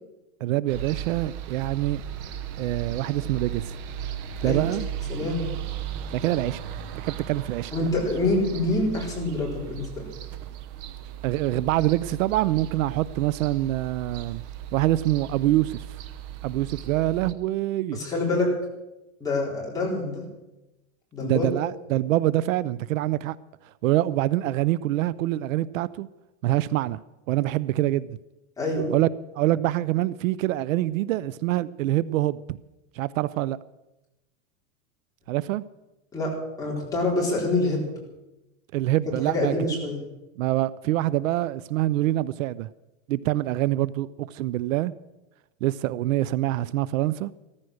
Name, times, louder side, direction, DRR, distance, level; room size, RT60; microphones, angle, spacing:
voice 1, 0.4-2.0 2.6-3.8 4.4-4.9 6.1-6.6 7.0-7.7 11.2-14.4 14.7-16.0 16.4-18.0 21.2-23.4 23.8-26.1 26.4-27.0 27.3-28.2 28.9-29.1 29.3-32.6 32.9-33.6 35.3-35.6 38.7-39.5 40.4-42.7 43.1-44.9 45.6-47.3, right 15 dB, 75° right, 19 dB, 0.6 m, -25 dB
sound 1, 0.7-17.3, right 10 dB, 35° right, 0.9 m, -37 dB
voice 2, 5.1-5.5 7.7-10.1 17.9-18.5 19.2-20.2 21.1-21.5 28.6-28.9 36.1-36.3 36.6-37.8 39.3-40.0, left 2 dB, 10° left, -4 dB, 4.0 m, -26 dB
15.0 x 14.0 x 6.4 m, 0.99 s
supercardioid pair, 175°, 40 cm